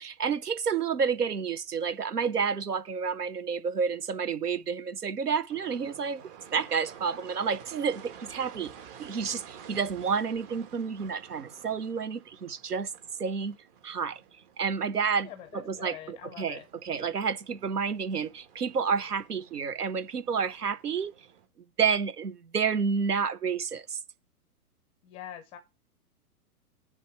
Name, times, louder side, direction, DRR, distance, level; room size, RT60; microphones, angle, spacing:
voice 1, 0.0-6.2 6.5-8.7 9.0-12.9 13.2-13.6 13.8-14.2 14.6-21.1 21.8-24.0, right 6 dB, 85° right, 1.0 m, -30 dB
sound 1, 5.5-21.5, right 8 dB, 35° right, 1.4 m, -51 dB
voice 2, 15.2-16.7 25.0-25.6, left 11 dB, 15° left, 0.5 m, -44 dB
10.0 x 3.5 x 6.6 m
figure-of-eight pair, 115°, 46 cm